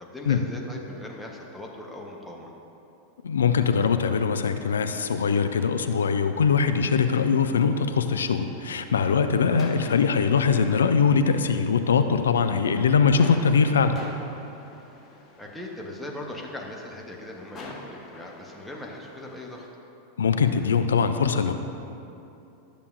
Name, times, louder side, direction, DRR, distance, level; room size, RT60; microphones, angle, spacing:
voice 1, 0.0-2.5 9.7-10.1 15.4-19.7, left 1 dB, 5° left, -2 dB, 1.0 m, -39 dB
voice 2, 3.2-14.0 20.2-21.5, left 6 dB, 65° left, 8 dB, 0.4 m, -22 dB
sound 1, 7.7-19.7, left 2 dB, 25° left, 1.3 m, -47 dB
12.0 x 6.8 x 2.6 m, 2.8 s
figure-of-eight pair, 90°, 0 cm